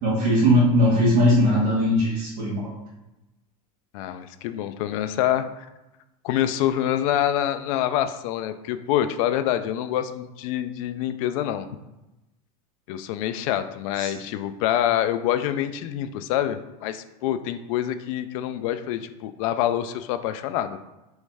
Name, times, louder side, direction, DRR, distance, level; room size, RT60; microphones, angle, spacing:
voice 1, 0.0-2.6 14.0-14.1, equal, 50° right, -6 dB, 1.5 m, -19 dB
voice 2, 3.9-5.7 6.2-11.7 12.9-20.8, left 11 dB, 65° left, 10 dB, 0.4 m, -26 dB
3.2 x 3.1 x 4.7 m, 0.98 s
supercardioid pair, 130°, 19 cm